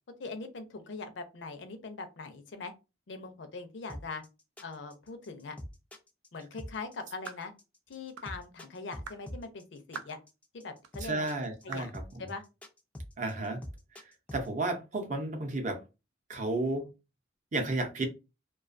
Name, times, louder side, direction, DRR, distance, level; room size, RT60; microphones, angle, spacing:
voice 1, 0.2-2.7 3.1-4.2 4.6-5.6 6.3-7.5 7.9-10.2 10.5-11.3 11.6-11.9 12.2-12.4, left 4 dB, 75° left, 7 dB, 0.5 m, -41 dB
sound 1, 3.9-14.5, equal, 5° left, 0.3 m, -44 dB
sound 2, 7.3-7.5 8.2-8.4 9.1-9.2 9.9-10.2 10.8-10.9 11.7-11.9, right 6 dB, 90° right, 0.3 m, -43 dB
voice 2, 11.0-12.3 13.2-13.6 14.3-15.8 16.3-16.9 17.5-18.1, right 2 dB, 40° right, 4 dB, 0.6 m, -32 dB
2.4 x 2.3 x 2.5 m, 0.27 s
head